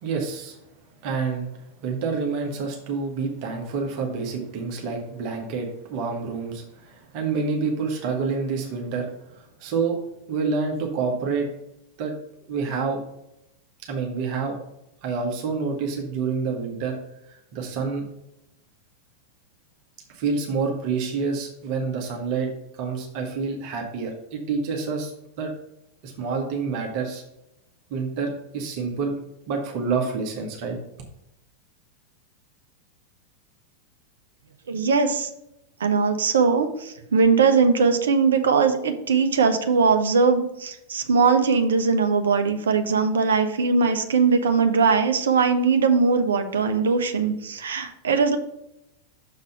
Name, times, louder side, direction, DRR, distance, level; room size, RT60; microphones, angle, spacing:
voice 1, 0.0-0.6 1.0-1.5 1.8-9.1 9.3-10.0 10.3-11.5 12.0-12.1 12.5-13.0 13.9-14.6 15.0-17.0 17.3-18.0 20.1-25.1 25.4-25.5 26.0-27.2 27.9-29.1 29.5-30.8, right 5 dB, 45° right, 1 dB, 1.3 m, -28 dB
voice 2, 34.7-35.3 35.8-48.4, right 5 dB, 65° right, 8 dB, 0.7 m, -20 dB
6.5 x 4.1 x 5.5 m, 0.84 s
figure-of-eight pair, 90°, 0 cm